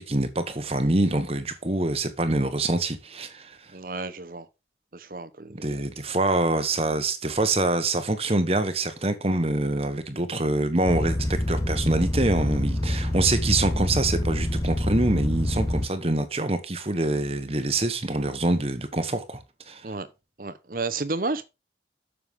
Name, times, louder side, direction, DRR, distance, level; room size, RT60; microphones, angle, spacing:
voice 1, 0.0-3.6 5.6-19.8, right 2 dB, 35° right, 1.2 m, -25 dB
voice 2, 3.7-4.5 4.9-5.8 19.8-20.1 20.4-21.4, right 3 dB, 50° right, 0.9 m, -32 dB
sound 1, 10.9-15.9, left 1 dB, 20° left, 0.8 m, -26 dB
9.6 x 6.9 x 3.6 m
head